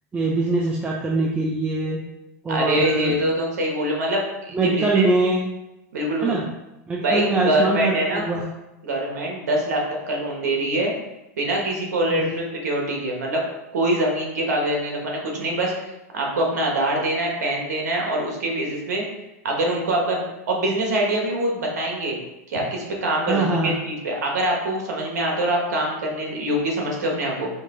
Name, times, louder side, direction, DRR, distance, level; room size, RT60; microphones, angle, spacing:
voice 1, 0.1-2.0 2.4-3.2 4.5-5.5 6.2-6.5 6.9-8.5 12.1-12.4 23.2-23.8, right 2 dB, 15° right, -2 dB, 0.5 m, -23 dB
voice 2, 2.5-5.1 5.9-6.4 7.0-8.3 8.8-10.9 11.4-13.4 13.7-19.0 19.4-22.2 22.5-27.5, right 1 dB, 85° right, 0 dB, 1.3 m, -24 dB
4.6 x 2.8 x 3.7 m, 0.95 s
supercardioid pair, 130°, 9 cm